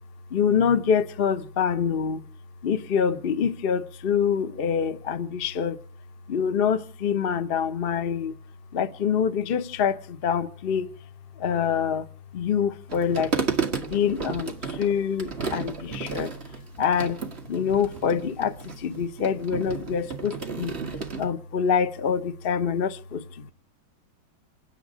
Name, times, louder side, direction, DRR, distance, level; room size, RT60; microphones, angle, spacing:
voice 1, 0.3-2.2 2.6-5.8 6.3-8.3 8.7-10.9 11.4-12.0 12.3-13.3 13.9-16.3 16.8-17.2 17.5-20.7 21.1-23.5, left 7 dB, 65° left, 0.5 m, -25 dB
sound 1, 12.9-21.3, right 5 dB, 30° right, 1.8 m, -33 dB
28.0 x 10.0 x 5.0 m
omnidirectional pair, 2.3 m